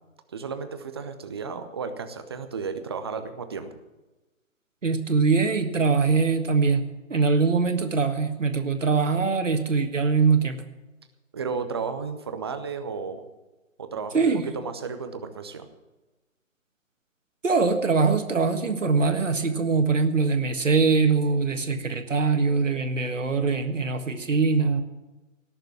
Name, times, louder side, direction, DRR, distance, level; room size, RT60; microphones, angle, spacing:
voice 1, 0.3-3.7 11.3-13.2 13.8-15.7, right 5 dB, 20° right, 9 dB, 0.7 m, -33 dB
voice 2, 4.8-10.6 14.1-14.5 17.4-24.8, right 4 dB, 65° right, 6 dB, 1.8 m, -23 dB
17.5 x 6.7 x 9.2 m, 1.1 s
figure-of-eight pair, 145°, 41 cm